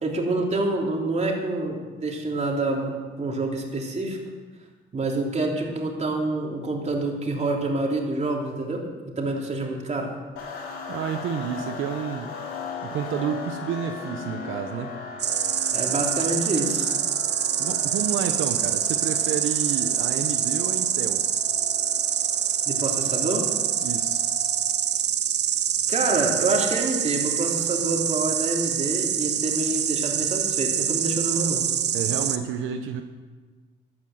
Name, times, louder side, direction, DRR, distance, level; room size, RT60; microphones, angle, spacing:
voice 1, 0.0-4.2 4.9-8.8 9.2-10.1 15.7-16.9 22.7-23.4 25.9-31.6, right 2 dB, 35° right, 0 dB, 3.2 m, -27 dB
sound 1, 10.4-24.9, left 5 dB, 90° left, 3.3 m, -38 dB
voice 2, 10.9-12.3 12.8-14.9 17.6-21.3 23.8-24.2 31.9-33.0, right 8 dB, 85° right, 6 dB, 1.0 m, -30 dB
Insect, 15.2-32.4, right 9 dB, 60° right, 1.0 m, -25 dB
13.0 x 9.7 x 7.9 m, 1.3 s
cardioid pair, 90°, 20 cm